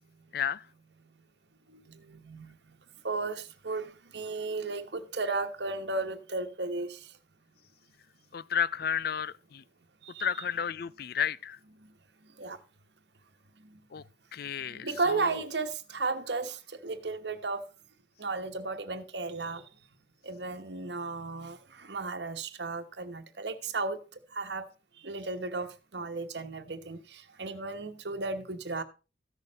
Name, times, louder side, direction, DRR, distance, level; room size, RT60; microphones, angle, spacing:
voice 1, 1.7-2.8 3.0-7.1 10.0-10.4 11.8-11.9 12.4-12.6 13.6-13.8 14.7-17.6 18.2-19.6 20.2-24.0 24.3-24.7 25.0-28.8, right 3 dB, 70° right, 1.2 m, -35 dB
voice 2, 8.3-9.6 10.2-11.6 13.9-14.0 14.3-14.9, left 8 dB, 55° left, 0.4 m, -31 dB
14.5 x 6.6 x 4.1 m
head